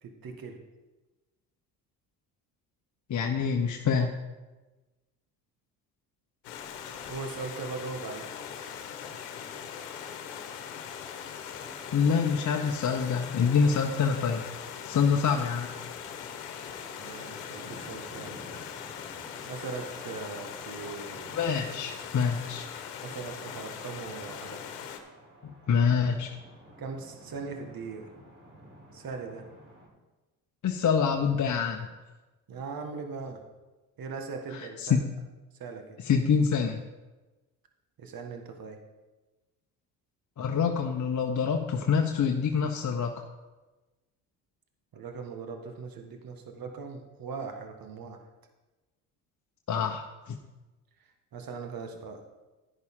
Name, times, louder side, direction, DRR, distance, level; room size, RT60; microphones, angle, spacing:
voice 1, 0.0-0.6 7.1-8.3 17.0-18.4 19.5-21.4 23.0-24.6 26.8-28.1 28.9-29.4 32.5-33.4 34.0-35.0 35.6-36.0 38.0-38.8 44.9-48.2 51.3-52.2, right 4 dB, 50° right, 4 dB, 1.7 m, -39 dB
voice 2, 3.1-4.1 11.9-14.4 14.8-15.7 21.3-22.6 25.4-26.3 30.6-31.9 34.6-35.0 36.0-36.8 40.4-43.2 49.7-50.4, left 6 dB, 40° left, 2 dB, 1.0 m, -26 dB
Stream, 6.4-25.0, left 8 dB, 80° left, 1.2 m, -41 dB
sound 1, 11.4-29.9, right 1 dB, 25° right, 3.8 m, -53 dB
11.0 x 10.5 x 3.8 m, 1.2 s
hypercardioid pair, 60°, 46 cm